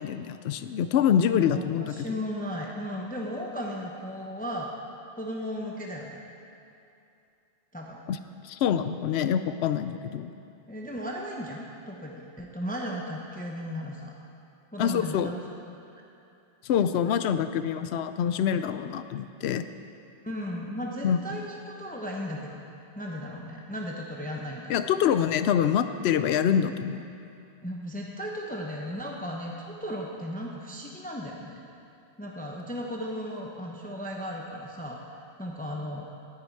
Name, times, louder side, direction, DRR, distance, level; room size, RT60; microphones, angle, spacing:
voice 1, 0.0-2.2 8.1-8.2 8.4-10.3 14.8-15.3 16.6-19.7 21.0-21.2 24.7-27.1, left 8 dB, 80° left, 10 dB, 0.8 m, -25 dB
voice 2, 1.5-4.7 5.2-6.2 7.7-8.0 10.7-14.1 14.7-15.4 18.7-18.8 20.2-22.6 23.0-24.7 27.6-31.6 32.2-36.1, equal, 10° left, -1 dB, 0.9 m, -36 dB
18.0 x 9.7 x 4.7 m, 2.6 s
omnidirectional pair, 1.1 m